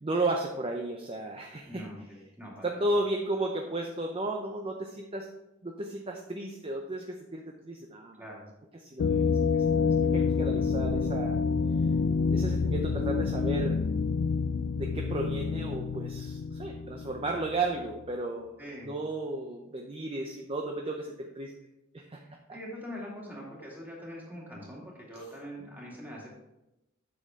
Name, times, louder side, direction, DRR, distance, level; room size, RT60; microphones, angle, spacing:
voice 1, 0.0-1.8 2.6-5.3 5.6-8.2 8.8-11.4 12.3-13.8 14.7-21.5 21.9-22.2 22.5-22.6 25.1-25.2, right 2 dB, 25° right, 2 dB, 0.6 m, -34 dB
voice 2, 1.7-2.8 8.2-8.5 18.6-18.9 22.2-26.3, equal, 10° right, -4 dB, 2.4 m, -43 dB
sound 1, 9.0-17.7, left 5 dB, 65° left, 0.4 m, -28 dB
8.4 x 6.6 x 3.6 m, 0.91 s
head